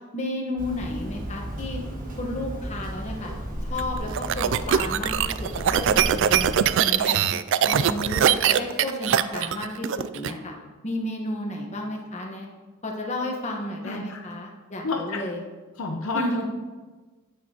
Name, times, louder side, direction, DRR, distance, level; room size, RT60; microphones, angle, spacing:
voice 1, 0.1-1.8 2.2-3.3 3.6-7.3 7.6-10.5 10.8-12.5 12.8-15.4 16.1-16.5, left 1 dB, 30° left, 0 dB, 1.2 m, -32 dB
Hammer, 0.6-6.7, right 1 dB, 40° right, 1.6 m, -34 dB
sound 1, 3.8-10.3, right 9 dB, 60° right, 0.3 m, -22 dB
voice 2, 13.8-14.2 14.8-15.2 15.8-16.5, left 3 dB, 70° left, 2 dB, 0.7 m, -30 dB
9.4 x 8.5 x 2.9 m, 1.3 s
head